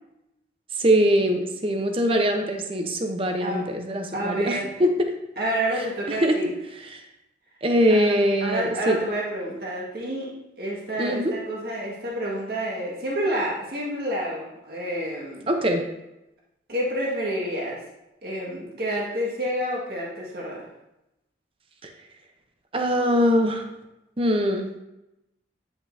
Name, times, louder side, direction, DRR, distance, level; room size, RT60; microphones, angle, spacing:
voice 1, 0.8-4.9 6.1-6.4 7.6-9.0 11.0-11.4 15.5-15.8 21.8-21.9 22.7-23.6 24.2-24.7, equal, 30° right, 4 dB, 0.8 m, -22 dB
voice 2, 4.1-4.7 5.4-6.5 7.9-10.3 10.6-15.5 16.7-17.8 18.2-20.7, right 1 dB, 55° right, -5 dB, 1.9 m, -29 dB
9.6 x 5.8 x 2.7 m, 0.91 s
head